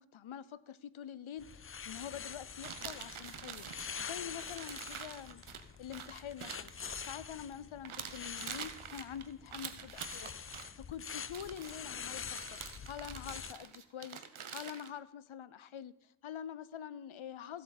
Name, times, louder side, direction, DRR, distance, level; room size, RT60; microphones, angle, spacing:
voice 1, 0.0-6.7 7.0-12.6 12.9-17.6, left 9 dB, 75° left, 17 dB, 0.7 m, -46 dB
sound 1, 1.4-13.5, left 7 dB, 30° left, 0.4 m, -46 dB
sound 2, 2.6-7.5 7.8-10.7 11.2-11.8 12.3-14.9, right 7 dB, 80° right, 1.0 m, -46 dB
16.0 x 8.1 x 4.0 m, 0.84 s
cardioid pair, 45°, 48 cm